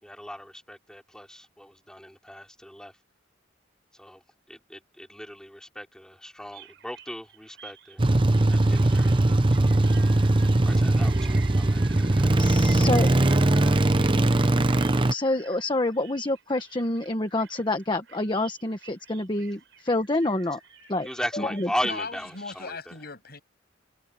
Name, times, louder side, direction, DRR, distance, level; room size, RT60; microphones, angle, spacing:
voice 1, 0.0-3.0 3.9-4.2 4.5-8.0 8.5-9.7 10.6-13.2 21.0-23.0, left 1 dB, 5° left, 3.2 m, -37 dB
sound 1, 6.5-22.7, right 8 dB, 70° right, 6.9 m, -49 dB
sound 2, 8.0-15.1, right 2 dB, 25° right, 0.7 m, -20 dB
voice 2, 12.4-13.1 15.1-20.6 20.9-21.1 21.3-21.7, left 2 dB, 25° left, 1.3 m, -27 dB
voice 3, 21.8-23.4, left 3 dB, 55° left, 7.3 m, -37 dB
head